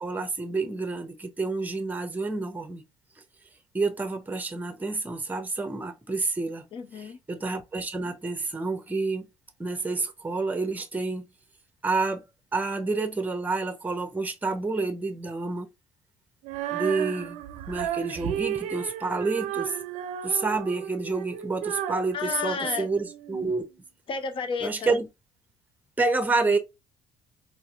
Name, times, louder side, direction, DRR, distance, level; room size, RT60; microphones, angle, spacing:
voice 1, 0.0-2.8 3.7-6.7 7.3-9.3 9.6-11.3 11.8-12.2 12.5-15.7 16.7-17.4 17.7-19.8 20.2-23.6 24.6-25.1 26.0-26.6, right 3 dB, 15° right, 0.7 m, -28 dB
voice 2, 6.7-7.2 22.1-22.9 24.1-25.0, left 6 dB, 45° left, 0.7 m, -32 dB
Female singing, 16.4-23.5, right 10 dB, 70° right, 0.5 m, -33 dB
4.0 x 2.5 x 2.4 m
supercardioid pair, 70°, 12 cm